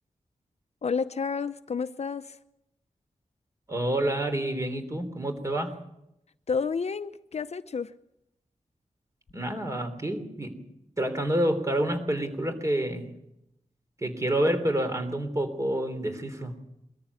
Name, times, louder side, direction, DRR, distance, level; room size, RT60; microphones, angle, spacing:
voice 1, 0.8-2.4 6.5-7.9, left 5 dB, 55° left, 12 dB, 0.7 m, -30 dB
voice 2, 3.7-5.7 9.3-10.6 11.0-13.1 14.0-16.6, right 1 dB, 25° right, 7 dB, 3.4 m, -28 dB
22.0 x 14.0 x 8.6 m, 0.84 s
wide cardioid pair, 105°, 13 cm